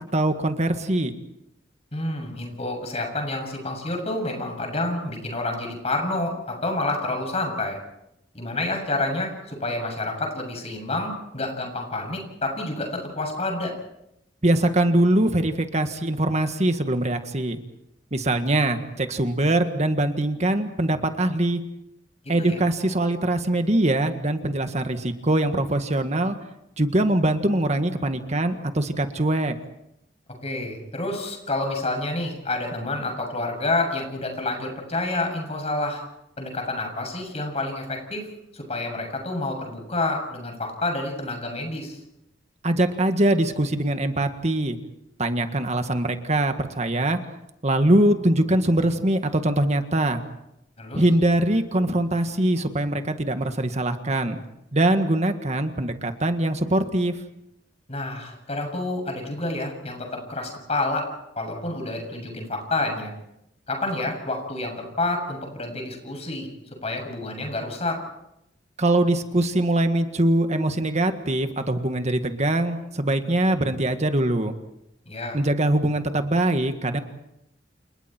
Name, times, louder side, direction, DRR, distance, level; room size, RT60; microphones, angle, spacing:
voice 1, 0.1-1.1 14.4-17.6 18.1-21.6 22.3-26.4 26.8-29.6 42.6-44.8 45.2-47.2 47.6-50.2 50.9-54.4 54.7-57.1 68.8-74.5 75.3-77.0, right 1 dB, 40° right, 7 dB, 1.7 m, -22 dB
voice 2, 1.9-7.8 8.3-13.7 22.4-22.6 30.4-36.0 36.4-38.3 38.5-42.0 50.8-51.0 57.9-61.1 61.4-63.1 63.7-66.5 66.8-68.0 75.1-75.4, left 2 dB, 35° left, 3 dB, 7.2 m, -28 dB
29.5 x 29.0 x 4.5 m, 0.82 s
head